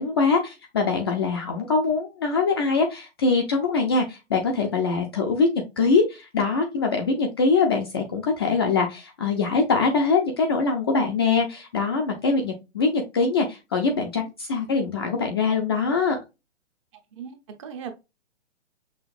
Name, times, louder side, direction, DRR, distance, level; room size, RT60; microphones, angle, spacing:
voice 1, 0.0-5.5 5.8-16.2, left 4 dB, 20° left, 0.4 m, -23 dB
voice 2, 17.1-17.9, right 7 dB, 25° right, 0.6 m, -38 dB
5.9 x 2.5 x 2.4 m
figure-of-eight pair, 130°, 36 cm